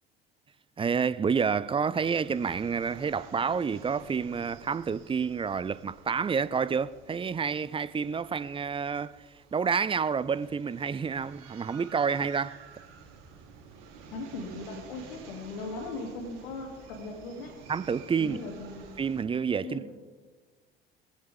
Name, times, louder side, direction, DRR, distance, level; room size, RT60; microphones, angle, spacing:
voice 1, 0.8-9.2 9.5-12.6 17.7-18.4 19.0-19.9, right 6 dB, 20° right, 0.5 m, -29 dB
sound 1, 2.0-19.2, right 6 dB, 65° right, 3.1 m, -51 dB
voice 2, 14.1-17.6 18.2-18.8 19.6-19.9, left 2 dB, 70° left, 2.4 m, -38 dB
19.5 x 16.0 x 3.5 m
figure-of-eight pair, 60°, 29 cm